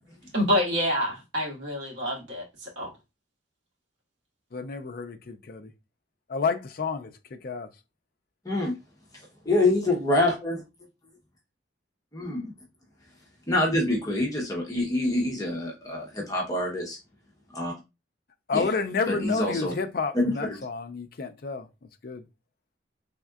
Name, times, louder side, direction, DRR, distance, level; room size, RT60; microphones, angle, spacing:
voice 1, 0.3-2.9, equal, 75° right, 1.7 m, -27 dB
voice 2, 4.5-5.7 6.3-7.7 18.5-21.7 22.0-22.2, left 4 dB, 50° left, 0.5 m, -30 dB
voice 3, 9.4-10.6 12.1-12.5 13.5-17.0 17.5-17.7 18.5-18.7 19.1-19.7 20.1-20.2, left 2 dB, 20° left, 1.0 m, -26 dB
4.2 x 3.5 x 2.4 m
head